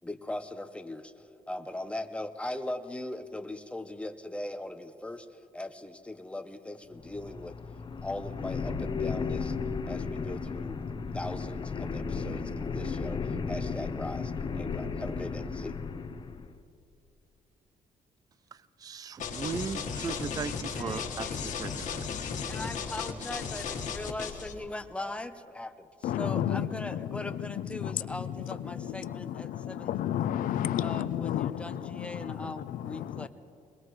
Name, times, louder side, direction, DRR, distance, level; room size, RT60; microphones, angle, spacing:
voice 1, 0.0-1.1 1.5-5.3 5.5-7.6 8.0-9.6 9.9-10.8 11.1-15.8 20.7-21.5 22.5-30.0 30.8-33.3, left 1 dB, 10° left, 8 dB, 0.8 m, -40 dB
sound 1, 6.9-16.5, left 5 dB, 35° left, 0.8 m, -34 dB
voice 2, 18.8-22.1, right 6 dB, 25° right, 17 dB, 0.4 m, -37 dB
sound 2, 19.2-24.5, left 6 dB, 65° left, 1.6 m, -35 dB
voice 3, 26.0-33.3, left 10 dB, 80° left, 15 dB, 0.6 m, -33 dB
22.5 x 20.5 x 3.2 m, 2.5 s
cardioid pair, 110°, 14 cm